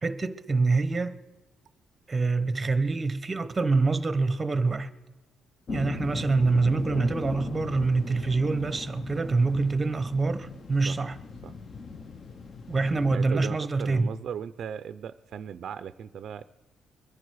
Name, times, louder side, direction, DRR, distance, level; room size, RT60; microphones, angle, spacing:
voice 1, 0.0-1.1 2.1-4.9 5.7-11.2 12.7-14.1, right 3 dB, 20° right, 0.8 m, -25 dB
sound 1, 5.7-13.2, left 4 dB, 40° left, 0.7 m, -39 dB
voice 2, 13.1-16.4, right 8 dB, 60° right, 0.4 m, -37 dB
22.5 x 10.5 x 4.7 m
cardioid pair, 145°, 0 cm